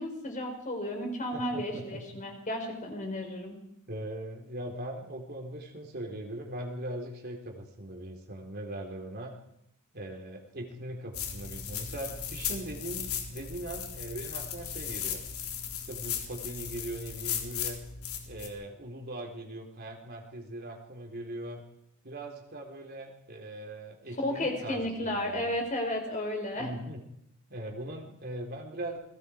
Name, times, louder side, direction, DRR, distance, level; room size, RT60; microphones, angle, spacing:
voice 1, 0.0-3.6 24.2-26.7, left 1 dB, 35° left, 3 dB, 4.9 m, -33 dB
voice 2, 1.3-2.0 3.9-9.3 9.9-15.2 15.7-17.8 18.3-21.6 22.0-25.6 26.5-27.0 27.5-29.0, right 1 dB, 45° right, 1 dB, 3.5 m, -40 dB
sound 1, 11.1-18.5, left 8 dB, 80° left, 3.8 m, -37 dB
28.5 x 20.5 x 4.9 m, 0.76 s
head